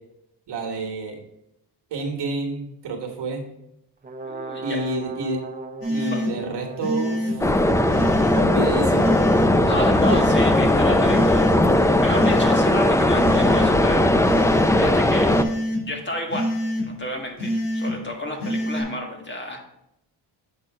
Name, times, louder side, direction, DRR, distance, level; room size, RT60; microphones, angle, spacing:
voice 1, 0.5-1.2 1.9-3.4 4.6-5.4 5.9-7.5 8.3-9.2, right 2 dB, 70° right, 2 dB, 1.5 m, -29 dB
Brass instrument, 4.0-9.9, right 3 dB, 20° right, 0.7 m, -38 dB
voice 2, 4.2-4.8 5.9-6.2 9.6-15.3 15.8-16.5 16.8-19.8, left 1 dB, 25° left, 1 dB, 1.6 m, -32 dB
sound 1, 5.8-6.3 6.8-7.3 7.9-8.4 8.9-9.5 10.0-10.5 11.0-11.6 12.1-12.6 13.1-13.7 14.2-14.7 15.3-15.8 16.3-16.8 17.4-17.9 18.4-18.8, equal, 70° left, 2.8 m, -25 dB
sound 2, 7.4-15.4, left 1 dB, 5° left, 0.4 m, -18 dB
7.6 x 4.3 x 4.8 m, 0.83 s
cardioid pair, 90°, 42 cm